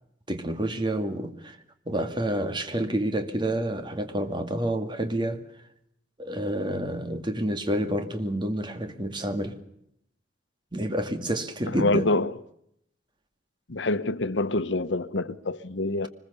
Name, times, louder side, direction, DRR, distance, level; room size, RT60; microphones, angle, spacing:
voice 1, 0.3-1.6 1.9-5.4 6.2-9.5 10.7-12.1, right 1 dB, 25° right, 2.2 m, -29 dB
voice 2, 11.7-12.4 13.7-16.1, left 2 dB, 80° left, 1.0 m, -26 dB
25.0 x 21.5 x 6.9 m
head